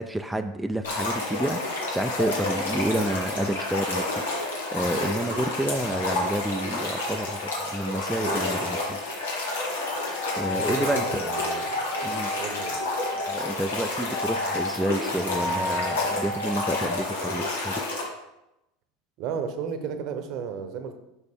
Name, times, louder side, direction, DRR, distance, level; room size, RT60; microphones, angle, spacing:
voice 1, 0.0-9.0 10.0-11.3 12.0-12.3 13.1-17.8, right 1 dB, 5° right, 6 dB, 0.4 m, -30 dB
sound 1, 0.8-18.0, left 2 dB, 85° left, 1.6 m, -30 dB
sound 2, 10.0-13.4 14.1-14.7 15.3-16.8, left 2 dB, 40° left, 1.0 m, -33 dB
voice 2, 10.5-11.7 12.4-12.9 19.2-21.0, right 7 dB, 55° right, 8 dB, 0.9 m, -33 dB
6.5 x 5.8 x 3.7 m, 0.89 s
hypercardioid pair, 95°, 0 cm